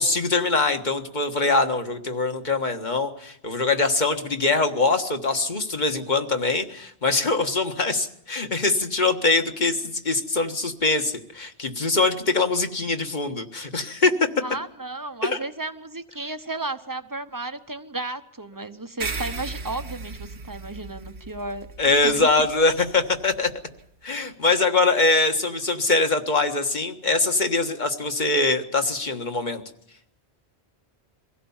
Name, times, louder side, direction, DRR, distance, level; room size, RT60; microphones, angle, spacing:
voice 1, 0.0-14.3 15.2-15.4 21.8-23.5 24.0-29.6, left 3 dB, 45° left, 6 dB, 1.7 m, -23 dB
voice 2, 14.4-22.3, right 2 dB, 20° right, 9 dB, 0.9 m, -34 dB
sound 1, 19.0-23.8, right 3 dB, 75° right, 1.6 m, -37 dB
23.5 x 16.5 x 7.2 m, 0.76 s
omnidirectional pair, 1.1 m